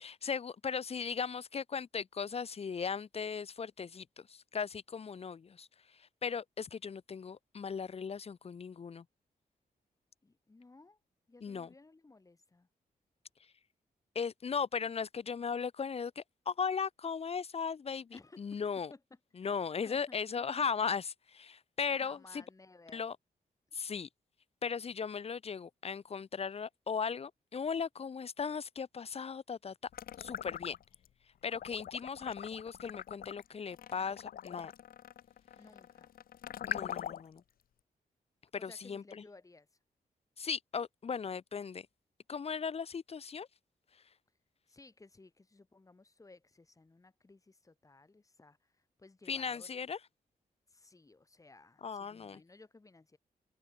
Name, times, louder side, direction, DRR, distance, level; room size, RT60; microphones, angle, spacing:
voice 1, 0.0-9.0 11.4-11.7 14.1-18.9 19.4-22.4 22.9-23.2 23.7-24.1 24.6-29.7 30.2-30.7 31.4-34.7 36.6-37.4 38.6-39.2 40.4-41.9 42.3-43.5 49.3-50.0 51.8-52.4, left 6 dB, 40° left, 1.0 m, -37 dB
voice 2, 10.2-11.0 11.3-12.7 18.1-18.6 18.9-19.5 19.8-20.6 21.9-23.0 35.6-36.1 38.6-39.7 44.7-49.7 50.7-53.2, left 3 dB, 20° left, 4.2 m, -58 dB
sound 1, 29.9-31.1 31.5-37.4, left 10 dB, 65° left, 0.6 m, -43 dB
wide cardioid pair, 145°, 16 cm